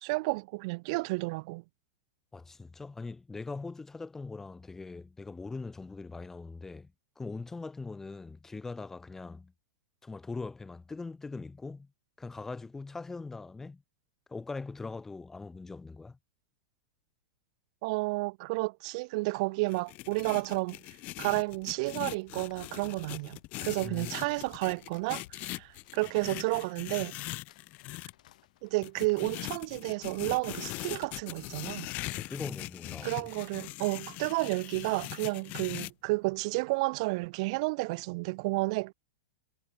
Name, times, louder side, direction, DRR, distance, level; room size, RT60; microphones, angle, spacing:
voice 1, 0.0-1.6 17.8-20.8 21.2-27.1 28.6-31.9 33.0-38.9, right 26 dB, 50° right, 0.5 m, -31 dB
voice 2, 2.3-6.9 7.2-9.5 10.0-11.9 12.2-13.8 14.3-16.2 23.8-24.4 32.0-33.3, left 3 dB, 10° left, 1.3 m, -41 dB
sound 1, 19.7-28.1 28.8-35.9, left 21 dB, 40° left, 1.0 m, -41 dB
sound 2, 21.4-29.6, left 14 dB, 70° left, 3.0 m, -62 dB
supercardioid pair, 140°, 4 cm